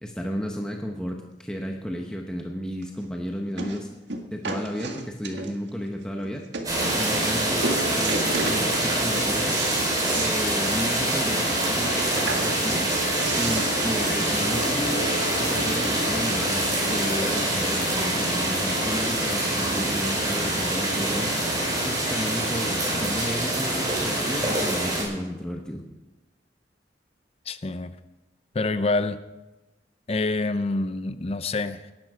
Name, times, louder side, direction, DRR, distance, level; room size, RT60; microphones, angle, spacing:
voice 1, 0.0-3.9 4.2-6.4 6.9-7.7 8.0-9.6 10.1-12.9 13.2-15.0 15.4-21.3 21.6-25.8, equal, 5° left, 1 dB, 1.1 m, -33 dB
sound 1, 2.8-2.9 3.6-3.8 4.1-5.7 6.2-6.3 6.5-6.7 7.1-7.4 7.6-8.6 9.0-10.4 10.7-10.8 11.1-11.2 12.1-15.6 16.4-16.5, right 3 dB, 85° right, 1.8 m, -33 dB
sound 2, 6.6-25.0, right 1 dB, 20° right, 4.8 m, -25 dB
Musical instrument, 7.5-22.2, equal, 50° left, 2.0 m, -36 dB
voice 2, 27.5-27.9 28.5-29.2 30.1-31.9, left 3 dB, 35° left, 11 dB, 0.6 m, -26 dB
18.0 x 10.5 x 5.0 m, 1.0 s
head